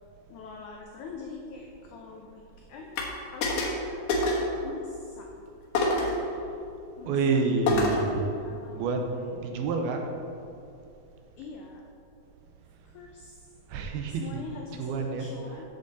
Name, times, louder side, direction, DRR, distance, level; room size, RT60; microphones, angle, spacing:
voice 1, 0.3-2.4 2.7-3.1 3.3-4.0 4.6-5.3 7.0-8.1 8.4-9.4 11.4-11.8 12.9-13.4 14.1-15.6, left 4 dB, 90° left, 1 dB, 1.7 m, -43 dB
sound 1, 3.0-3.1 3.4-3.8 4.1-4.5 5.8-6.2 7.7-8.1, left 2 dB, 75° left, 3.1 m, -26 dB
voice 2, 7.1-8.3 8.7-9.1 9.3-10.0 13.7-14.4 14.8-15.3 15.6-15.7, right 4 dB, 80° right, 3 dB, 2.7 m, -28 dB
11.5 x 7.4 x 4.1 m, 2.6 s
omnidirectional pair, 4.4 m